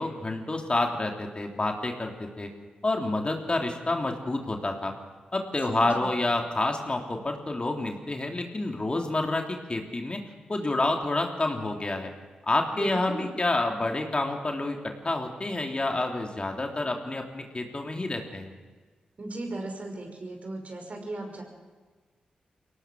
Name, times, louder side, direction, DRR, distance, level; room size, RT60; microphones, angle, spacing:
voice 1, 0.0-2.5 2.8-4.9 5.3-10.2 10.5-12.1 12.4-18.5, left 2 dB, 35° left, 3 dB, 3.2 m, -28 dB
voice 2, 5.7-6.2 12.7-13.3 19.2-21.4, right 2 dB, 50° right, 3 dB, 5.7 m, -36 dB
23.0 x 18.0 x 6.4 m, 1.4 s
supercardioid pair, 40°, 3 cm